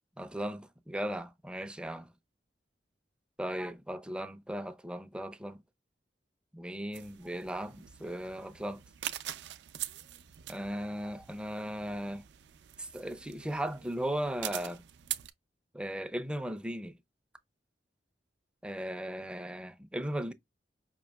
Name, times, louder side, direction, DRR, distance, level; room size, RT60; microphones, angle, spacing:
voice 1, 0.2-2.1 3.4-5.6 6.5-8.8 10.5-12.2 12.8-14.8 15.7-16.9 18.6-20.3, equal, 5° right, 0.4 m, -37 dB
sound 1, 6.9-15.3, right 13 dB, 75° right, 0.4 m, -44 dB
5.2 x 2.7 x 2.2 m
head